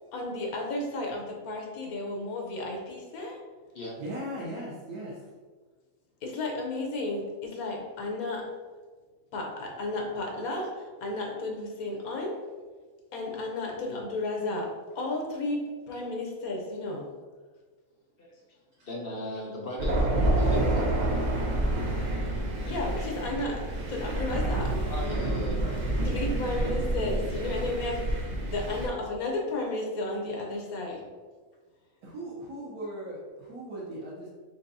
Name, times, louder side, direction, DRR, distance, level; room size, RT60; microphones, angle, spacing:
voice 1, 0.1-3.4 6.2-8.5 9.3-12.4 13.1-17.1 22.7-24.7 26.0-31.0, left 2 dB, 75° left, 1 dB, 1.3 m, -33 dB
voice 2, 4.0-5.2 32.0-34.3, right 1 dB, 80° right, -7 dB, 1.4 m, -38 dB
voice 3, 18.8-20.9 24.9-26.1 26.4-26.5 30.9-31.0, left 1 dB, 55° left, -2 dB, 0.6 m, -38 dB
Thunder, 19.8-28.9, right 1 dB, 55° right, 0.5 m, -28 dB
4.4 x 3.8 x 2.7 m, 1.4 s
omnidirectional pair, 1.5 m